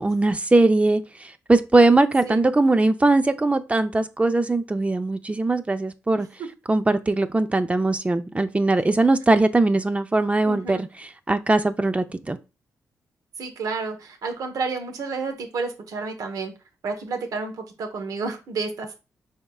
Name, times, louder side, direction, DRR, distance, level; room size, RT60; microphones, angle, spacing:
voice 1, 0.0-6.3 6.7-12.4, right 2 dB, 20° right, 0.5 m, -20 dB
voice 2, 10.4-10.8 13.4-16.5 16.8-19.0, right 4 dB, 75° right, 1.1 m, -30 dB
5.3 x 3.6 x 2.3 m
cardioid pair, 55°, 6 cm